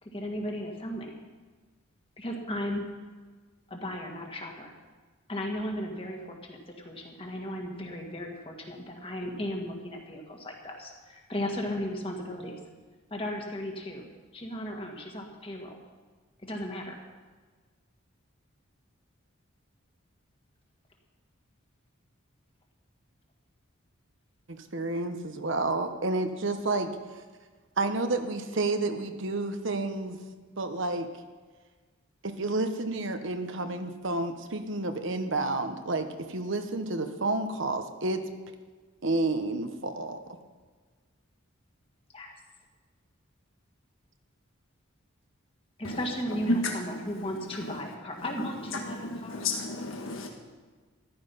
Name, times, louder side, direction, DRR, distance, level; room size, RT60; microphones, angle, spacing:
voice 1, 0.0-1.2 2.2-2.9 3.7-4.7 5.3-12.6 13.1-14.0 14.3-15.8 16.4-17.0 42.1-42.3 45.8-49.4, equal, 25° left, 1 dB, 1.9 m, -36 dB
voice 2, 24.5-27.2 27.8-30.2 30.6-31.1 32.2-38.2 39.0-40.2, right 2 dB, 60° right, 7 dB, 1.0 m, -30 dB
voice 3, 45.8-47.8 48.2-50.3, left 2 dB, 65° left, 1 dB, 1.4 m, -33 dB
14.5 x 12.0 x 5.6 m, 1.4 s
head